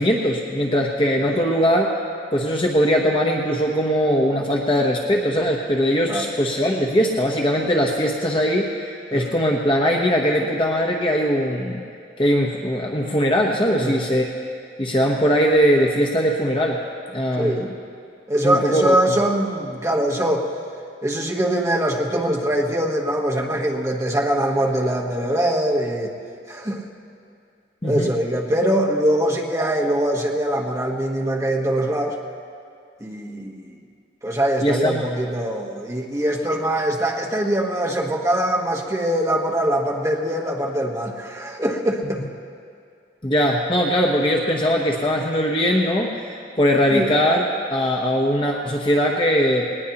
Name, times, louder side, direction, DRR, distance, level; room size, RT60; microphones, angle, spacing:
voice 1, 0.0-1.9 2.3-11.8 12.2-14.2 14.8-16.8 17.1-17.7 18.4-18.9 27.8-28.1 34.6-35.1 43.2-47.4 47.7-49.6, equal, 30° left, 0 dB, 0.9 m, -20 dB
voice 2, 17.4-17.7 18.3-20.5 21.0-26.1 26.5-26.8 27.8-32.2 33.0-33.8 34.2-42.2 46.9-47.2, right 1 dB, 15° right, -1 dB, 1.2 m, -22 dB
19.5 x 19.0 x 2.9 m, 2.4 s
head